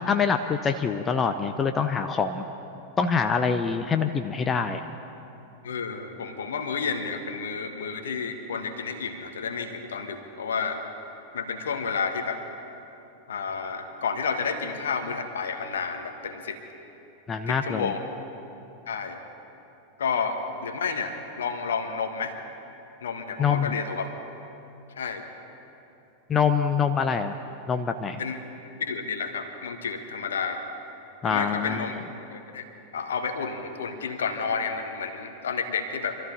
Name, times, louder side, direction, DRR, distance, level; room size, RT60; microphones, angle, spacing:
voice 1, 0.1-2.4 3.0-4.8 17.3-17.9 23.4-23.7 26.3-27.3 27.7-28.2 31.2-31.9, left 6 dB, 20° left, 7 dB, 0.6 m, -25 dB
voice 2, 5.6-10.8 11.3-12.4 13.3-16.6 17.5-18.0 18.9-19.2 20.0-22.3 23.0-24.1 24.9-25.2 28.2-28.4 28.6-30.6 31.2-31.9 32.3-32.6 32.9-36.2, left 5 dB, 65° left, 6 dB, 1.4 m, -30 dB
25.0 x 13.5 x 4.0 m, 2.9 s
figure-of-eight pair, 90°, 0 cm